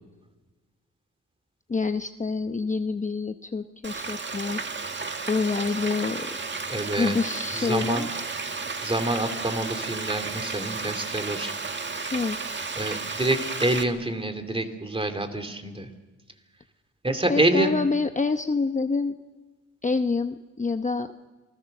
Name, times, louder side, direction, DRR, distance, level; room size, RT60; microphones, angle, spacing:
voice 1, 1.7-4.9 5.3-6.3 7.0-8.1 12.1-12.6 17.3-19.1 19.8-21.1, left 4 dB, 25° left, 7 dB, 0.8 m, -27 dB
Frying (food), 3.8-13.8, right 4 dB, 35° right, 1.9 m, -33 dB
voice 2, 6.7-7.2 7.5-8.1 8.8-11.5 12.8-15.9 17.0-17.8, right 1 dB, 15° right, 7 dB, 2.7 m, -27 dB
27.5 x 20.5 x 6.6 m, 1.2 s
cardioid pair, 100°, 31 cm